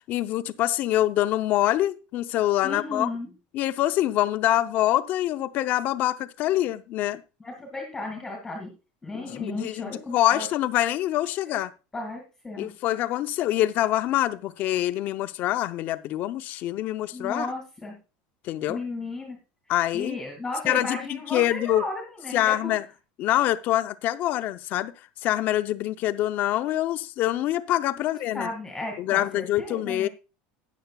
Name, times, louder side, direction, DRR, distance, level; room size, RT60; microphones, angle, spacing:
voice 1, 0.1-3.1 3.5-7.2 9.1-11.7 12.6-17.5 18.4-18.8 19.7-20.2 20.7-21.8 22.3-22.8 23.2-24.9 25.2-28.5 29.0-30.1, left 14 dB, 40° left, 0.6 m, -25 dB
voice 2, 2.6-3.3 7.4-8.7 9.0-10.5 11.5-11.6 11.9-12.7 17.1-18.0 18.7-19.4 19.9-22.7 28.0-28.1 28.3-30.1, left 2 dB, 10° left, 2.1 m, -34 dB
13.5 x 9.3 x 2.3 m
cardioid pair, 165°, 4 cm